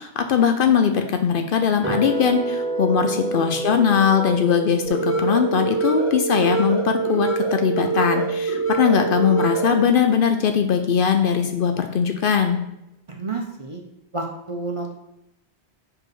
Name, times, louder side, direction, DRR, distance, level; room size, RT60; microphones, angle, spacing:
voice 1, 0.0-12.6, left 7 dB, 60° left, 6 dB, 0.7 m, -20 dB
sound 1, 1.8-7.9, right 2 dB, 10° right, 1.4 m, -30 dB
voice 2, 2.9-3.7 13.1-13.8 14.1-14.9, right 3 dB, 35° right, 2 dB, 0.6 m, -31 dB
sound 2, 4.8-9.8, right 4 dB, 30° left, 2.3 m, -24 dB
4.8 x 4.8 x 4.8 m, 0.84 s
omnidirectional pair, 1.1 m